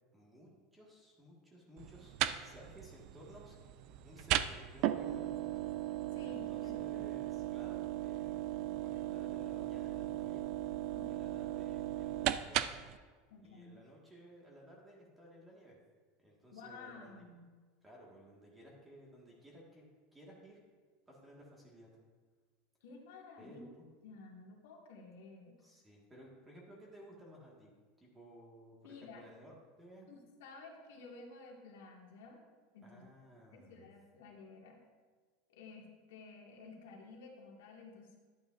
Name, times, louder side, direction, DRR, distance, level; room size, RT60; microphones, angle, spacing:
voice 1, 0.1-3.6 4.0-5.5 6.2-8.3 8.8-10.5 11.1-12.7 13.4-15.8 16.2-17.1 17.8-20.6 21.1-22.0 23.4-23.9 25.6-27.7 28.0-30.1 32.8-33.9, equal, 10° right, -3 dB, 1.8 m, -56 dB
sound 1, 1.8-13.0, right 13 dB, 55° right, 0.3 m, -37 dB
voice 2, 6.1-7.0 10.9-11.4 13.3-13.8 16.5-17.4 22.8-23.7 24.0-25.6 28.8-29.2 30.1-32.4 32.7-33.0 33.5-34.8 35.5-38.2, left 3 dB, 85° left, -1 dB, 2.0 m, -53 dB
11.5 x 8.7 x 2.6 m, 1.4 s
supercardioid pair, 140°, 0 cm